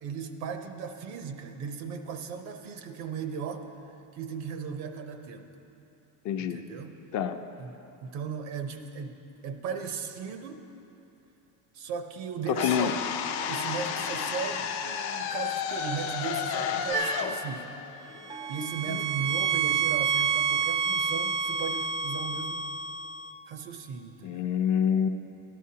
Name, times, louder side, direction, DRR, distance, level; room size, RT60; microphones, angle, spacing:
voice 1, 0.0-3.6 4.1-5.5 6.4-6.9 7.6-9.1 9.4-10.6 11.7-13.0 13.5-17.7 18.5-22.7 23.5-24.5, right 6 dB, 80° right, 7 dB, 0.9 m, -37 dB
voice 2, 6.2-6.6 7.1-7.4 12.6-13.0 24.2-25.1, left 8 dB, 50° left, 7 dB, 0.5 m, -26 dB
sound 1, 12.5-18.6, left 7 dB, 85° left, 0.7 m, -32 dB
sound 2, 16.9-17.5 18.2-23.3, right 6 dB, 55° right, 0.6 m, -29 dB
Bell, 18.3-19.9, right 5 dB, 15° right, 0.3 m, -48 dB
13.0 x 11.0 x 2.8 m, 2.9 s
cardioid pair, 130°, 38 cm